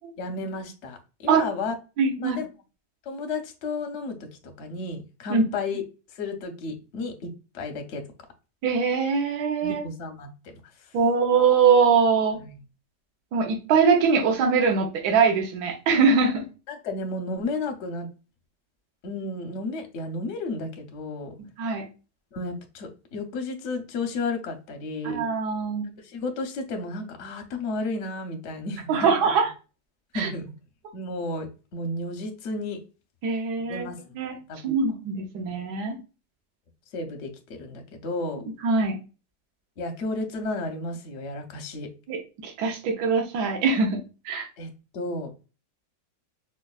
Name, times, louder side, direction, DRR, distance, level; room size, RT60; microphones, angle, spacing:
voice 1, 0.2-1.7 2.2-2.5 3.0-4.3 4.6-5.8 6.1-8.0 9.6-10.6 12.4-12.6 16.7-18.1 19.0-21.3 22.3-25.2 25.8-29.2 30.1-30.5 30.9-32.8 33.6-34.1 34.5-34.6 35.4-35.5 36.9-38.4 39.8-41.9 44.6-45.3, left 3 dB, 60° left, 4 dB, 0.7 m, -33 dB
voice 2, 2.0-2.4 5.3-5.4 8.6-9.8 10.9-12.4 13.3-16.4 21.6-21.8 25.0-25.9 28.9-29.5 30.1-30.3 33.2-33.9 34.1-34.4 34.6-36.0 38.6-39.0 42.1-44.0 44.2-44.5, right 5 dB, 70° right, 3 dB, 1.2 m, -22 dB
4.5 x 2.3 x 2.3 m, 0.32 s
omnidirectional pair, 1.9 m